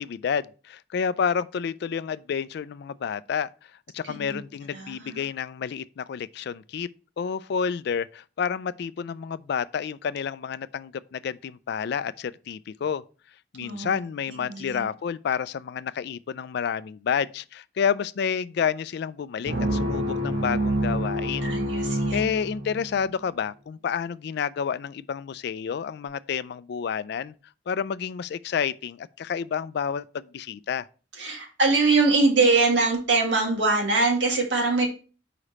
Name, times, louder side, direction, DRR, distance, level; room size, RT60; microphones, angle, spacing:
voice 1, 0.0-3.5 3.9-6.9 7.2-13.0 13.5-21.6 22.1-27.3 27.7-30.9, left 7 dB, 65° left, 0.3 m, -29 dB
voice 2, 4.1-4.4 4.7-5.2 13.6-14.0 14.3-14.9 21.4-22.3 31.2-34.9, right 3 dB, 85° right, 1.8 m, -23 dB
sound 1, 19.5-23.0, right 1 dB, 70° right, 1.4 m, -27 dB
5.0 x 4.9 x 4.2 m
head